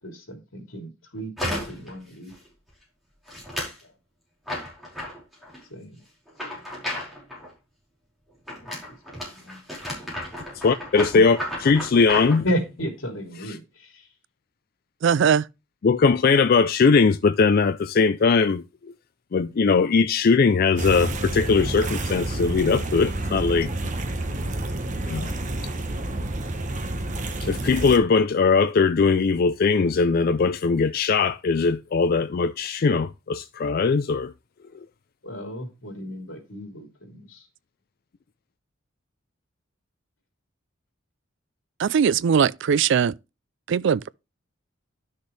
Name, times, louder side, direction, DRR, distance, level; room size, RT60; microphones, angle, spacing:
voice 1, 0.0-2.3 3.8-3.9 5.7-6.0 8.6-8.7 9.1-9.6 12.4-14.1 25.1-25.3 35.2-37.5, equal, 85° left, 3.3 m, -33 dB
sound 1, 1.4-1.9 2.3-2.7 3.3-3.8 4.5-5.6 6.3-7.5 8.5-12.4, left 1 dB, ahead, 4.9 m, -33 dB
voice 2, 10.6-12.4 15.8-18.6 19.3-23.7 25.1-25.2 27.4-34.3, left 4 dB, 50° left, 0.4 m, -20 dB
voice 3, 15.0-15.4 41.8-43.1 43.7-44.1, right 7 dB, 65° right, 0.4 m, -20 dB
sound 2, 20.8-28.0, right 2 dB, 40° right, 1.1 m, -29 dB
11.5 x 6.5 x 3.3 m
head